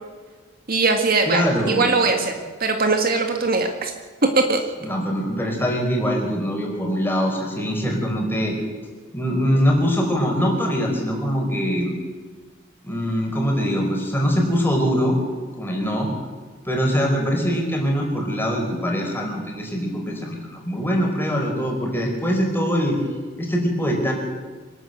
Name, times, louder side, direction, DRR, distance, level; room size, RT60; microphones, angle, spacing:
voice 1, 0.7-2.3 2.6-3.9 4.3-4.6, right 3 dB, 45° right, 4 dB, 1.8 m, -20 dB
voice 2, 1.3-1.8 4.8-8.6 9.1-11.9 12.8-15.2 15.6-16.1 16.6-23.0 23.4-24.1, equal, 10° left, 1 dB, 4.8 m, -23 dB
25.5 x 12.5 x 8.0 m, 1.4 s
head